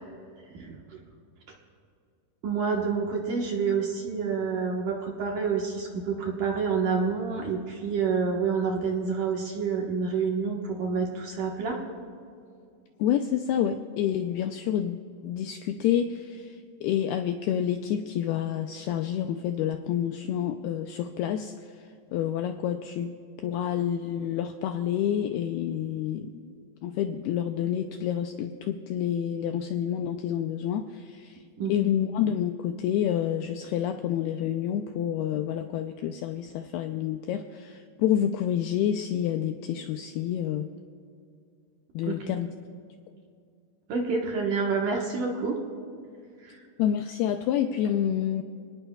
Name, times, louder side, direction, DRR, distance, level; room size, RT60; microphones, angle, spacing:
voice 1, 0.5-1.0 2.4-11.8 31.6-31.9 42.0-42.3 43.9-45.6 46.4-46.6, right 5 dB, 65° right, -1 dB, 2.3 m, -28 dB
voice 2, 13.0-23.1 23.4-26.6 26.8-31.4 31.7-40.7 41.9-42.5 46.8-48.4, left 10 dB, 85° left, 6 dB, 2.2 m, -28 dB
28.5 x 19.0 x 2.3 m, 2.4 s
omnidirectional pair, 5.1 m